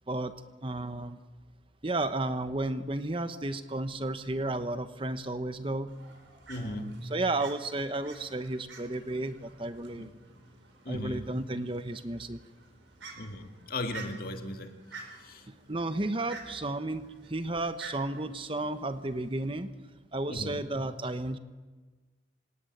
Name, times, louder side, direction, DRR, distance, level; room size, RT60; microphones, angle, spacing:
voice 1, 0.6-1.2 1.8-5.9 6.6-10.1 10.9-12.4 15.7-17.0 17.3-19.7 20.1-21.4, right 2 dB, 30° right, 10 dB, 1.0 m, -33 dB
Fowl, 5.9-19.5, right 4 dB, 80° right, 4.5 m, -51 dB
voice 2, 6.5-7.0 10.0-10.1 10.9-11.4 13.2-14.8 15.2-15.4 20.3-20.7, left 1 dB, 50° left, 6 dB, 2.2 m, -37 dB
27.0 x 17.5 x 9.3 m, 1.3 s
head